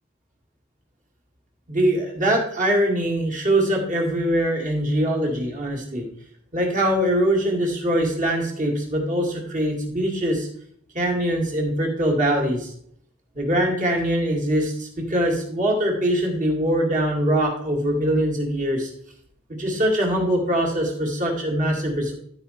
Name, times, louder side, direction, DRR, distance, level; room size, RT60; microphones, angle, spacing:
voice 1, 1.7-6.1 6.5-10.5 10.9-12.7 13.3-18.9 19.5-22.1, right 1 dB, 40° right, 1 dB, 2.2 m, -22 dB
12.0 x 4.9 x 4.2 m, 0.65 s
head